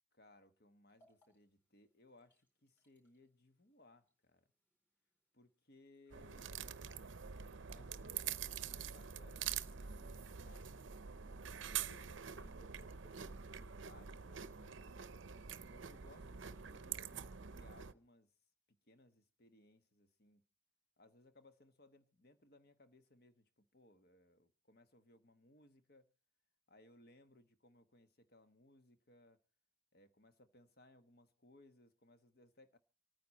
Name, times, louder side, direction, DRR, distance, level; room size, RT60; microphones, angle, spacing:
voice 1, 0.1-4.5 5.3-6.8 7.7-10.7 11.6-14.9 15.7-18.3 18.8-20.4 21.0-26.1 26.7-29.4 29.9-32.8, left 2 dB, 50° left, 1.2 m, -66 dB
sound 1, 0.9-10.7, equal, 10° left, 4.1 m, -81 dB
sound 2, 6.1-17.9, right 8 dB, 75° right, 0.6 m, -46 dB
27.0 x 9.5 x 4.1 m
head